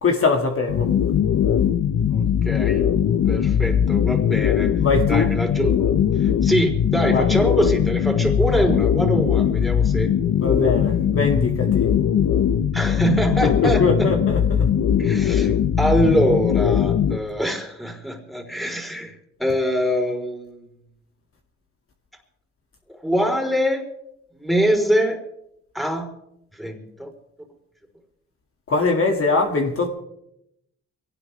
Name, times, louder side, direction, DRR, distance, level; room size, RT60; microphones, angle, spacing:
voice 1, 0.0-0.9 4.8-5.3 7.1-7.3 10.4-11.9 13.4-14.7 28.7-29.9, left 4 dB, 45° left, 2 dB, 2.2 m, -22 dB
Machinery BK, 0.7-17.2, left 8 dB, 65° left, 1.0 m, -20 dB
voice 2, 2.1-2.9 3.3-4.7 5.1-5.7 6.2-10.1 12.7-14.1 15.0-20.6 23.0-23.9 24.3-25.2 25.7-26.1 26.6-27.1, equal, ahead, 2 dB, 3.9 m, -24 dB
23.5 x 17.5 x 3.4 m, 0.80 s
cardioid pair, 90°, 30 cm